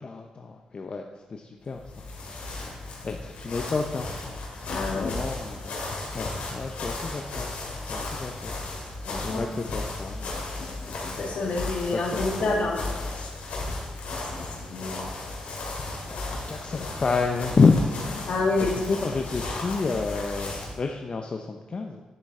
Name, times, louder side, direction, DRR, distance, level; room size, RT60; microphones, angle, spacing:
voice 1, 0.0-1.0 1.3-1.8 3.0-4.1 4.9-5.8 6.1-7.5 7.9-8.6 9.2-10.8 11.5-12.8 14.1-14.6 16.0-18.4 18.7-22.0, left 4 dB, 45° left, 3 dB, 0.6 m, -29 dB
sound 1, 1.7-20.8, left 2 dB, 90° left, 2.4 m, -35 dB
voice 2, 4.7-5.2 9.0-9.4 10.6-10.7 11.0-13.3 14.3-15.0 18.3-18.9, left 3 dB, 70° left, -1 dB, 2.0 m, -29 dB
9.9 x 7.3 x 3.7 m, 1.2 s
cardioid pair, 80°, 2 cm